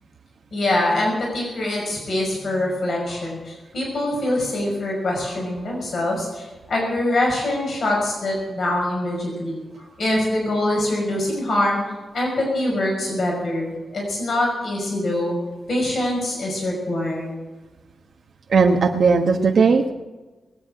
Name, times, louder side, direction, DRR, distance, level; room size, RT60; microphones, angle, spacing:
voice 1, 0.5-9.6 10.0-11.8 12.1-15.4 15.7-17.3, left 1 dB, 60° left, -2 dB, 5.8 m, -24 dB
voice 2, 18.5-19.9, right 4 dB, 65° right, 1 dB, 1.1 m, -17 dB
21.0 x 9.5 x 6.4 m, 1.2 s
wide cardioid pair, 125°, 0 cm